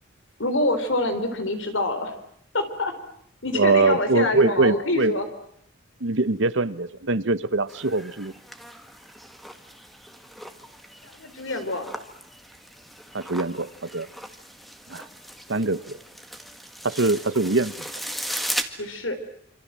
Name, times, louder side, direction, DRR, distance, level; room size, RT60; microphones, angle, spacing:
voice 1, 0.4-2.1 2.5-2.9 3.4-5.2 11.0-11.9 18.8-19.2, left 2 dB, 75° left, 9 dB, 4.1 m, -26 dB
voice 2, 3.5-5.1 6.0-8.3 13.1-14.1 14.9-15.0 15.5-16.0 16.8-17.7, right 3 dB, 65° right, 15 dB, 1.1 m, -23 dB
sound 1, 7.7-18.6, equal, ahead, 1.8 m, -37 dB
27.0 x 26.5 x 7.6 m, 0.68 s
head